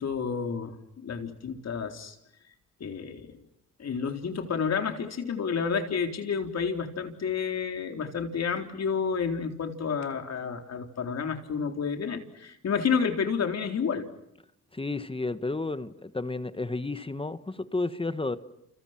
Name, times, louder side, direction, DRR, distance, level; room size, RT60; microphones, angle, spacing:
voice 1, 0.0-2.2 2.8-3.3 3.8-14.1, left 6 dB, 55° left, 4.0 m, -30 dB
voice 2, 14.7-18.4, left 3 dB, 15° left, 1.4 m, -32 dB
30.0 x 29.5 x 6.0 m
cardioid pair, 90°, 32 cm